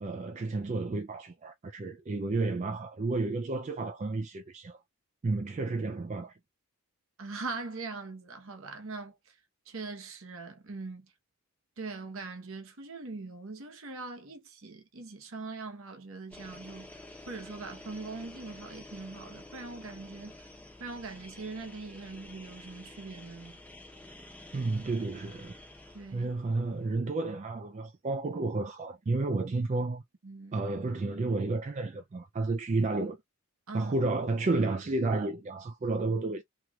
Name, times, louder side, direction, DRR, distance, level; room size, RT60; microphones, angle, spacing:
voice 1, 0.0-4.8 5.2-6.3 24.5-25.5 26.1-30.0 30.5-33.2 33.7-36.4, right 3 dB, 30° right, 0.3 m, -31 dB
voice 2, 7.2-9.3 9.7-11.1 11.8-16.9 17.3-20.4 20.8-23.6 25.9-26.3 30.2-30.6 33.7-33.9, right 3 dB, 65° right, 0.9 m, -41 dB
sound 1, 16.3-27.0, left 1 dB, 5° left, 0.7 m, -50 dB
3.0 x 2.9 x 2.3 m
head